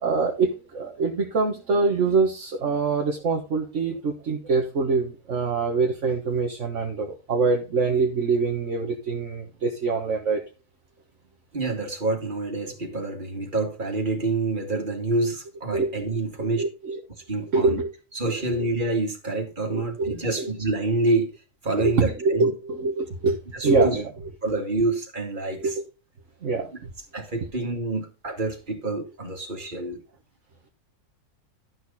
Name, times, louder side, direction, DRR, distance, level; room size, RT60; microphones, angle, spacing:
voice 1, 0.0-10.4 15.7-15.9 16.6-17.0 17.5-17.9 19.7-20.5 22.0-23.4 23.6-24.1 25.6-25.9 26.4-26.7 29.6-29.7, right 4 dB, 55° right, 1.7 m, -24 dB
voice 2, 11.5-16.6 17.3-17.8 18.1-21.3 21.6-22.5 23.5-24.0 24.4-25.8 27.1-30.0, right 2 dB, 30° right, 2.6 m, -27 dB
12.5 x 6.4 x 4.2 m
omnidirectional pair, 1.6 m